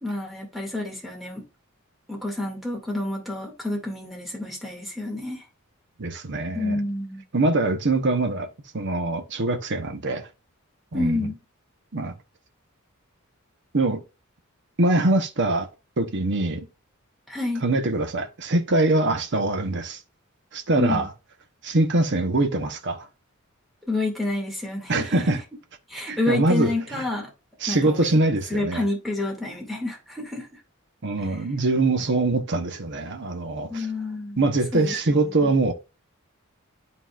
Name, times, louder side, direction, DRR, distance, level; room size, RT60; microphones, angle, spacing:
voice 1, 0.0-1.4 2.1-5.4 6.5-7.2 10.9-11.4 17.3-17.6 20.8-21.0 23.9-25.1 25.9-27.3 27.7-28.2 28.5-30.5 33.7-35.5, left 2 dB, ahead, 2.2 m, -29 dB
voice 2, 6.0-6.8 7.3-8.5 8.7-10.3 10.9-11.3 11.9-12.2 13.7-14.0 14.8-15.7 16.0-16.7 17.6-20.0 20.5-21.1 21.6-23.1 24.9-25.4 26.1-27.0 27.6-28.8 31.0-33.9 34.4-35.7, right 2 dB, 55° right, 0.9 m, -23 dB
11.5 x 4.0 x 2.4 m
head